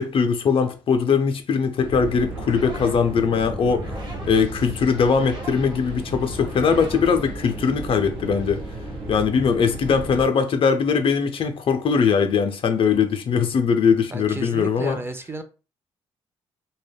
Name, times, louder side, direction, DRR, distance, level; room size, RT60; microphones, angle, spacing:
voice 1, 0.0-3.9 4.2-8.6 9.1-15.0, left 6 dB, 55° left, 0.5 m, -21 dB
sound 1, 1.8-10.2, right 1 dB, 90° right, 0.8 m, -34 dB
sound 2, 2.1-8.0, right 1 dB, 40° right, 0.9 m, -43 dB
voice 2, 14.1-15.4, right 2 dB, 20° right, 0.5 m, -32 dB
2.2 x 2.1 x 3.3 m
supercardioid pair, 55°, 11 cm